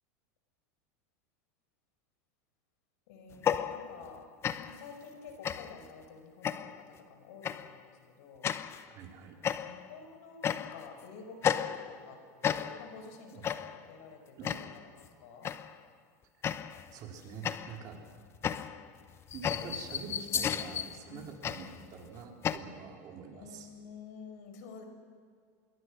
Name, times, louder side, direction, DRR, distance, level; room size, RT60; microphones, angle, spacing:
voice 1, 3.1-4.3 4.6-7.9 8.2-8.5 9.6-15.5 21.1-21.3 23.3-24.8, left 5 dB, 75° left, 6 dB, 5.2 m, -50 dB
sound 1, 3.3-4.2 4.4-4.9 5.4-5.9 6.4-6.9 7.4-7.7 8.4-8.9 9.4-9.9 10.4-10.9 11.4-12.1 12.4-13.0 13.4-13.9 14.4-14.9 15.4-15.8 16.4-16.9 17.4-22.6, left 8 dB, 30° left, 0.9 m, -34 dB
voice 2, 8.9-9.4 13.3-13.5 14.4-14.6 16.9-18.0 19.3-23.7, right 6 dB, 45° right, 1 dB, 4.3 m, -46 dB
26.5 x 22.5 x 6.3 m, 2.1 s
supercardioid pair, 130°, 9 cm